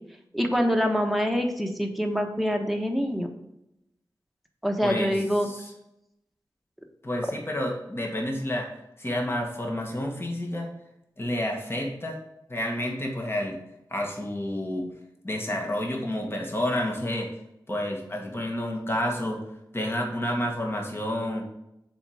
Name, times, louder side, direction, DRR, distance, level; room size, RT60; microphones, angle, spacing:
voice 1, 0.3-3.3 4.6-5.5, equal, ahead, 3 dB, 1.3 m, -25 dB
voice 2, 4.8-5.7 7.0-8.7 9.0-10.7 11.2-12.2 12.5-13.6 13.9-14.9 15.2-17.3 17.7-19.4 19.7-21.4, left 1 dB, 30° left, 1 dB, 1.7 m, -29 dB
7.1 x 4.5 x 5.0 m, 0.84 s
cardioid pair, 50°, 8 cm